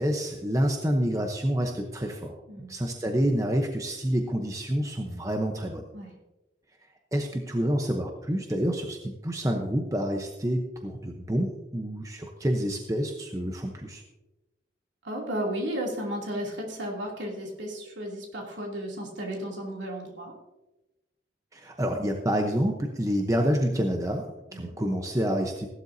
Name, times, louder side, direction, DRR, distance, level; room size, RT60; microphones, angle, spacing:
voice 1, 0.0-2.3 2.7-5.9 7.1-14.0 21.5-25.7, equal, 15° right, 3 dB, 0.8 m, -28 dB
voice 2, 15.0-20.3 24.5-24.7, right 1 dB, 75° right, -1 dB, 2.7 m, -34 dB
16.0 x 11.5 x 2.7 m, 1.0 s
head